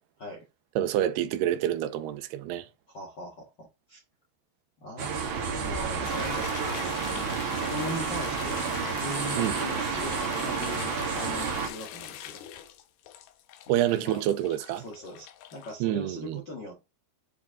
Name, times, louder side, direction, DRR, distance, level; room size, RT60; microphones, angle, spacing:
voice 1, 0.8-2.7 9.4-9.6 13.7-14.8 15.8-16.4, right 12 dB, 85° right, 2.7 m, -27 dB
voice 2, 2.9-4.0 4.8-5.1 5.6-7.3 7.6-12.4 14.0-14.2 14.8-16.9, left 1 dB, 60° left, 1.1 m, -40 dB
sound 1, 5.0-11.7, right 5 dB, 65° right, 1.2 m, -30 dB
sound 2, 6.0-15.7, left 11 dB, 75° left, 2.7 m, -42 dB
8.2 x 4.7 x 3.6 m
omnidirectional pair, 4.7 m